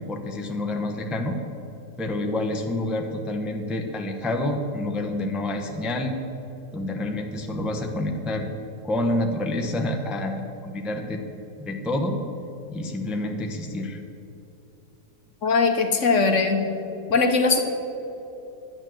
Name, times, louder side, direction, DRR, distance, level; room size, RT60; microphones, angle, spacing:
voice 1, 0.1-1.4 2.0-6.1 6.7-8.5 8.8-11.2 11.6-12.2 12.7-14.0, left 1 dB, ahead, 2 dB, 0.7 m, -28 dB
voice 2, 15.4-16.6 17.1-17.6, left 4 dB, 55° left, 5 dB, 1.3 m, -20 dB
11.5 x 8.9 x 7.6 m, 2.9 s
omnidirectional pair, 1.7 m